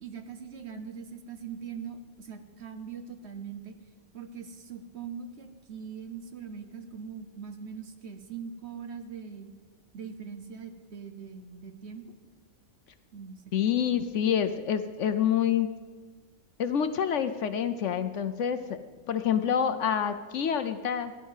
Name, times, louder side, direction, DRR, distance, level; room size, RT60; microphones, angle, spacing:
voice 1, 0.0-3.8 4.1-9.5 9.9-12.2 13.1-13.4, right 6 dB, 55° right, 8 dB, 1.1 m, -41 dB
voice 2, 13.5-15.7 16.6-18.8 19.1-21.1, left 8 dB, 65° left, 10 dB, 0.9 m, -27 dB
16.0 x 11.0 x 5.5 m, 1.4 s
omnidirectional pair, 1.5 m